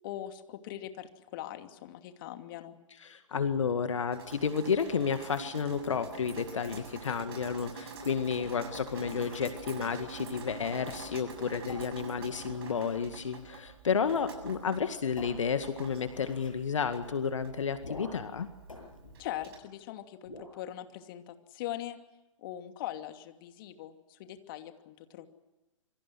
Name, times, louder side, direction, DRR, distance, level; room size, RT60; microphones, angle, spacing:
voice 1, 0.0-2.7 19.2-22.0 22.4-25.3, left 13 dB, 40° left, 7 dB, 2.6 m, -41 dB
voice 2, 3.0-18.5, left 6 dB, 70° left, 9 dB, 2.0 m, -31 dB
Drip, 4.1-19.6, right 4 dB, 50° right, 7.3 m, -47 dB
sound 1, 8.4-9.6 10.7-11.3 11.7-13.1 14.1-14.4 14.7-14.8 15.2-16.6 17.8-18.3 18.7-19.8 20.2-20.6, left 2 dB, 85° left, 7.8 m, -49 dB
27.5 x 25.0 x 6.2 m, 1.0 s
figure-of-eight pair, 120°, 17 cm